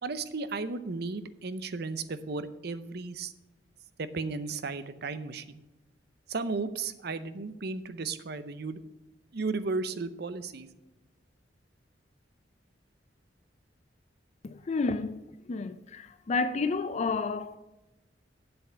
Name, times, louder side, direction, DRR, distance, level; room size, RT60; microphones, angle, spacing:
voice 1, 0.0-3.3 4.0-5.6 6.3-8.8 9.3-10.7, right 3 dB, 60° right, 0.7 m, -34 dB
voice 2, 14.4-15.2 15.5-17.6, left 4 dB, 40° left, 0.4 m, -30 dB
8.2 x 7.7 x 5.7 m
head